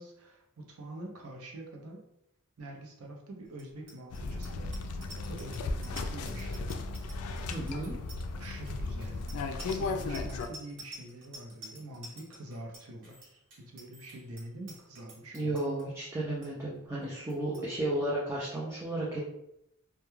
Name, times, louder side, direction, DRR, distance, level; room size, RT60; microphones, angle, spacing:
voice 1, 0.0-2.0 2.6-6.7 8.3-15.7 17.4-17.7, right 1 dB, 80° right, 0 dB, 0.6 m, -46 dB
Bicycle bell, 3.5-15.8 16.2-16.5 16.7-17.0 17.3-17.6, right 1 dB, 60° right, 1.0 m, -50 dB
sound 1, 4.1-10.5, left 3 dB, 80° left, 0.3 m, -35 dB
voice 2, 7.5-8.0 15.3-19.2, right 1 dB, 10° right, -6 dB, 0.4 m, -33 dB
2.2 x 2.2 x 3.0 m, 0.81 s
head